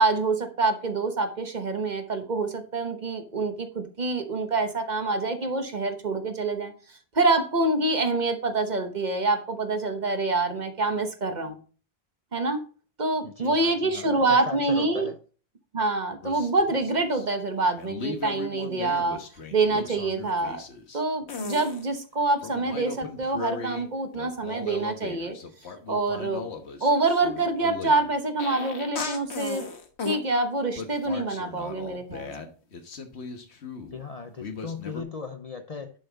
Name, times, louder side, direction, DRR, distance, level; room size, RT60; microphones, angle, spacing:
voice 1, 0.0-6.7 7.1-11.6 12.3-12.6 13.0-15.1 15.7-19.2 19.5-20.6 20.9-25.4 25.9-26.5 26.8-29.6 30.0-32.3, right 3 dB, 45° right, 7 dB, 1.1 m, -26 dB
voice 2, 13.2-15.2 33.9-35.9, left 4 dB, 40° left, 7 dB, 0.6 m, -37 dB
sound 1, 16.2-17.3 17.8-21.0 21.3-21.8 22.4-23.9 24.1-30.2 30.8-34.0 34.4-35.0, left 4 dB, 80° left, 1.4 m, -37 dB
10.0 x 5.7 x 3.9 m, 0.39 s
omnidirectional pair, 1.1 m